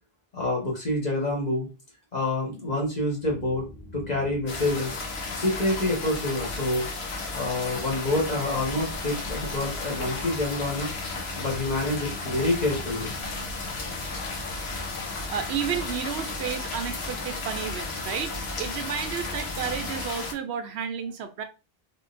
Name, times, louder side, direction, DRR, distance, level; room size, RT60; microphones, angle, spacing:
voice 1, 0.3-1.7 2.1-3.6 3.9-4.9 5.3-6.9 7.3-10.9 11.3-13.1, left 2 dB, 40° left, 1.3 m, -27 dB
sound 1, 3.2-20.1, right 1 dB, 60° left, 1.4 m, -42 dB
sound 2, 4.5-20.3, left 4 dB, 80° left, 1.1 m, -34 dB
voice 2, 15.3-21.4, right 8 dB, 90° right, 0.9 m, -32 dB
3.7 x 2.6 x 2.5 m
omnidirectional pair, 1.1 m